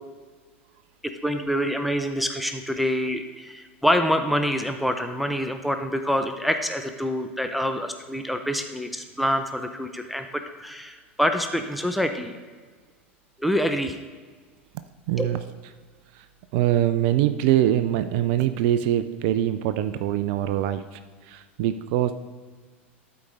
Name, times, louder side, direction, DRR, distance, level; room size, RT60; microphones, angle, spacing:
voice 1, 1.2-12.4 13.4-14.0 15.2-15.3, equal, ahead, 6 dB, 0.6 m, -26 dB
voice 2, 15.1-15.4 16.5-20.8 21.3-22.1, right 12 dB, 55° right, 11 dB, 0.4 m, -23 dB
12.0 x 4.7 x 3.8 m, 1.5 s
figure-of-eight pair, 85°, 7 cm